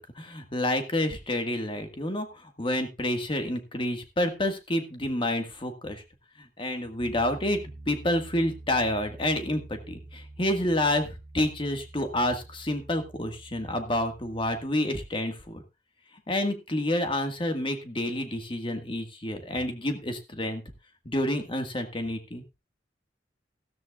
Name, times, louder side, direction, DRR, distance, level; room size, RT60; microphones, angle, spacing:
voice 1, 0.0-6.0 6.4-7.6 7.9-11.1 11.3-15.6 16.3-20.6 21.1-22.4, left 1 dB, 30° left, 6 dB, 1.8 m, -29 dB
Piano, 7.0-14.7, right 2 dB, 75° right, 1.4 m, -47 dB
14.5 x 13.5 x 2.4 m, 0.25 s
head